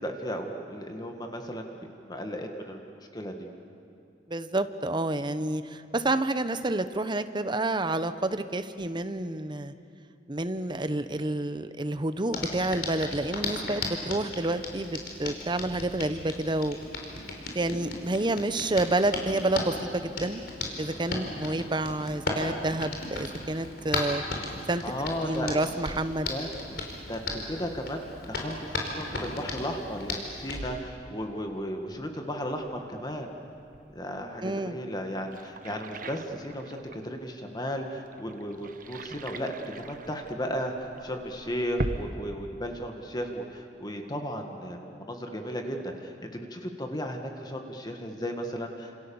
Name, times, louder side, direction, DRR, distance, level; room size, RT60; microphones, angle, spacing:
voice 1, 0.0-1.7 2.0-3.5 24.8-25.5 25.9-26.0 26.3-26.8 27.1-33.3 33.9-48.9, equal, 25° left, 4 dB, 1.9 m, -35 dB
voice 2, 4.3-9.7 10.3-16.8 17.5-20.4 20.8-24.2 24.7-24.8 25.2-26.3 34.4-34.8, right 2 dB, 25° right, 11 dB, 1.0 m, -29 dB
Hands, 12.3-30.6, left 2 dB, 65° left, 4.5 m, -36 dB
sound 1, 25.4-42.2, right 2 dB, 50° right, 1.1 m, -43 dB
30.0 x 28.0 x 7.2 m, 2.5 s
head